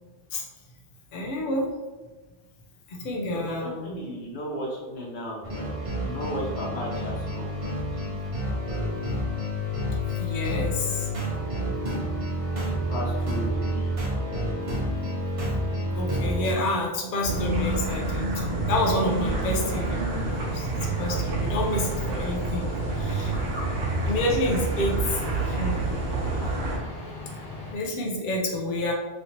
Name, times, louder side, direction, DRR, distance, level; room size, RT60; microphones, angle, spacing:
voice 1, 1.1-1.7 2.9-4.0 8.9-9.0 10.2-11.1 16.0-23.4 24.0-25.8 27.7-28.9, left 1 dB, 60° left, -2 dB, 0.7 m, -29 dB
voice 2, 3.3-7.5 12.6-13.9, equal, 90° left, -4 dB, 1.2 m, -35 dB
sound 1, 5.4-16.5, equal, 40° right, 0.6 m, -29 dB
sound 2, 17.2-26.8, right 2 dB, 70° right, 1.0 m, -28 dB
sound 3, 19.1-27.7, left 2 dB, 25° left, 0.7 m, -40 dB
3.1 x 2.8 x 2.8 m, 1.2 s
omnidirectional pair, 1.1 m